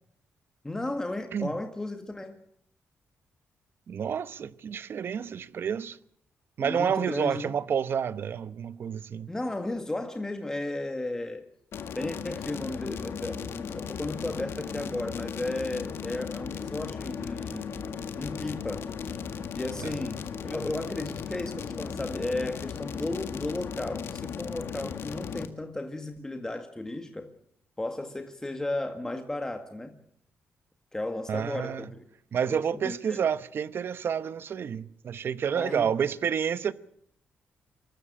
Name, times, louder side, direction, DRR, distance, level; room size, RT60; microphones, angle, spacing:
voice 1, 0.6-2.4 6.6-7.5 9.3-11.4 11.9-17.8 18.2-18.9 19.6-27.3 27.8-29.9 30.9-32.0 32.4-33.2 35.6-35.9, left 2 dB, 15° left, 1.8 m, -34 dB
voice 2, 3.9-6.0 6.6-9.3 19.8-19.9 31.3-31.9 32.3-36.7, right 7 dB, 55° right, 0.9 m, -29 dB
sound 1, 11.7-25.5, left 7 dB, 65° left, 1.8 m, -37 dB
24.5 x 13.5 x 8.8 m
cardioid pair, 105°, 4 cm